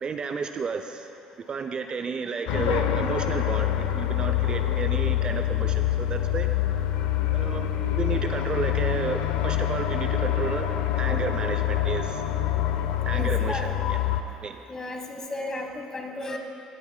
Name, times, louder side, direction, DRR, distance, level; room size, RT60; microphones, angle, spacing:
voice 1, 0.0-1.1 1.5-6.5 7.3-7.7 8.0-10.7 10.9-12.2 13.1-14.0 14.4-14.6, right 5 dB, 35° right, 7 dB, 0.4 m, -32 dB
sound 1, 2.5-14.2, left 11 dB, 80° left, 0.5 m, -26 dB
voice 2, 13.1-13.7 14.7-16.4, left 2 dB, 25° left, 3 dB, 1.2 m, -34 dB
16.5 x 9.5 x 2.2 m, 2.6 s
supercardioid pair, 90°, 2 cm